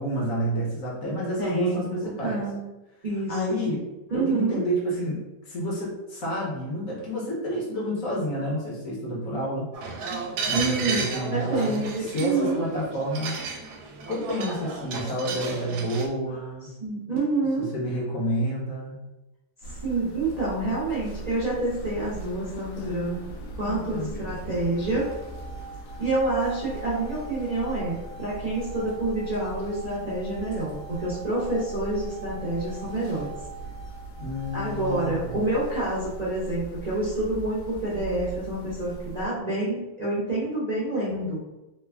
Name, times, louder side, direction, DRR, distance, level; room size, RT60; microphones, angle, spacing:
voice 1, 0.0-2.4 3.3-3.8 4.1-9.7 10.5-13.4 14.1-16.7 17.6-18.9 23.6-24.1 34.2-35.5, equal, 60° left, -3 dB, 1.2 m, -29 dB
voice 2, 1.4-2.6 3.0-3.7 4.1-4.6 10.5-12.6 16.8-17.7 19.7-23.2 23.6-25.1 26.0-33.3 34.5-41.4, right 2 dB, 35° right, -8 dB, 0.7 m, -28 dB
sound 1, 9.7-16.1, right 4 dB, 80° right, 1.1 m, -33 dB
sound 2, 19.6-39.3, right 2 dB, 85° left, 1.2 m, -40 dB
sound 3, 24.7-35.6, right 5 dB, 20° left, 0.8 m, -45 dB
3.3 x 2.2 x 3.4 m, 1.0 s
omnidirectional pair, 1.7 m